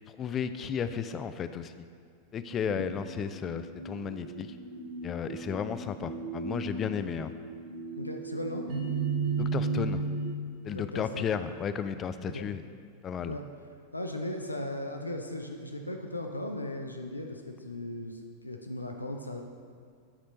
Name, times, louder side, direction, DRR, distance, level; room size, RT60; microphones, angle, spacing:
voice 1, 0.1-1.8 2.3-4.6 5.0-7.3 9.4-10.0 10.6-12.6 13.0-13.4, left 7 dB, 25° left, 11 dB, 0.4 m, -34 dB
sound 1, 2.7-10.3, right 4 dB, 55° right, 2.0 m, -35 dB
voice 2, 8.0-8.7 10.7-11.3 12.3-12.4 13.3-13.4 13.9-19.4, left 1 dB, 85° left, 4 dB, 0.6 m, -37 dB
8.7 x 4.3 x 5.2 m, 2.2 s
figure-of-eight pair, 90°, 0 cm